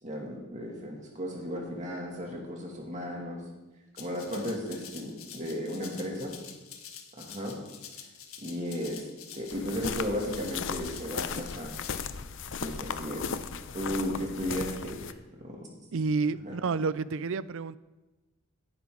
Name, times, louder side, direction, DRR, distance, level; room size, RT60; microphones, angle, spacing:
voice 1, 0.0-3.4 4.0-6.4 7.2-7.6 8.4-9.0 9.3-11.7 12.6-13.3 13.7-15.6 16.4-16.6, equal, 35° right, -1 dB, 2.5 m, -35 dB
Rattle (instrument), 4.0-12.0, left 8 dB, 75° left, 1.6 m, -47 dB
sound 1, 9.5-15.1, left 6 dB, 60° left, 0.6 m, -36 dB
voice 2, 15.9-17.8, right 4 dB, 65° right, 17 dB, 0.4 m, -29 dB
16.5 x 9.9 x 3.9 m, 1.1 s
head